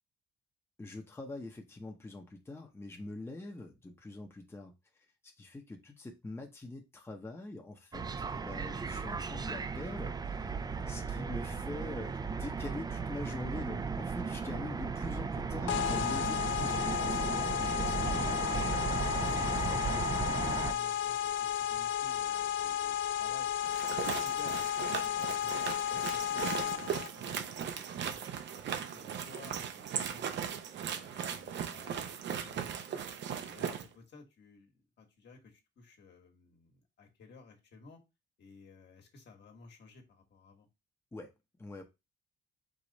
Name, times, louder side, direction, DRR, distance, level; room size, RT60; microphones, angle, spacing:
voice 1, 0.8-4.7 5.4-10.5 10.9-18.4 41.1-41.3 41.6-41.8, left 2 dB, 10° left, 0.8 m, -44 dB
sound 1, 7.9-20.7, right 5 dB, 20° right, 0.4 m, -36 dB
sound 2, 15.7-27.1, left 10 dB, 75° left, 0.4 m, -33 dB
voice 2, 18.5-20.3 20.7-23.5 23.8-24.7 25.0-28.4 28.7-30.4 30.9-33.0 33.4-38.0 38.4-40.7, left 4 dB, 60° left, 1.5 m, -55 dB
sound 3, 23.6-33.8, right 8 dB, 65° right, 0.6 m, -38 dB
4.9 x 2.5 x 4.0 m
cardioid pair, 90°, 20 cm